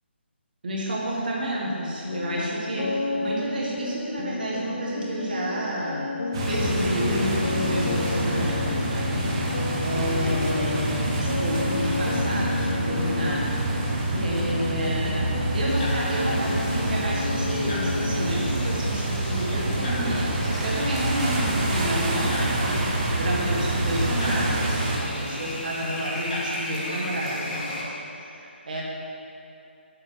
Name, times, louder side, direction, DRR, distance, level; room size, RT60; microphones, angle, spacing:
voice 1, 0.6-6.1 6.5-13.5 13.8-15.3 15.5-28.8, equal, 50° right, -4 dB, 1.9 m, -30 dB
sound 1, 2.0-18.6, left 3 dB, 55° left, 0.7 m, -31 dB
sound 2, 6.3-25.0, right 1 dB, 25° right, 1.1 m, -27 dB
sound 3, 15.7-27.8, left 1 dB, 35° left, 1.6 m, -35 dB
7.7 x 7.3 x 4.7 m, 2.7 s
figure-of-eight pair, 145°, 6 cm